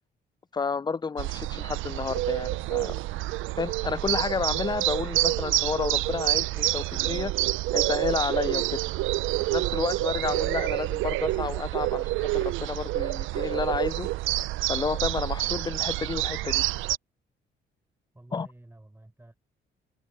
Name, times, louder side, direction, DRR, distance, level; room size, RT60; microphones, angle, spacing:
voice 1, 0.5-3.0 3.6-7.3 7.7-8.8 9.5-14.1 14.7-16.6 18.3-18.5, left 5 dB, 20° left, 0.4 m, -31 dB
sound 1, 1.2-17.0, right 17 dB, 85° right, 0.5 m, -28 dB
voice 2, 18.1-19.4, right 1 dB, 10° right, 6.7 m, -51 dB
cardioid pair, 90°, 20 cm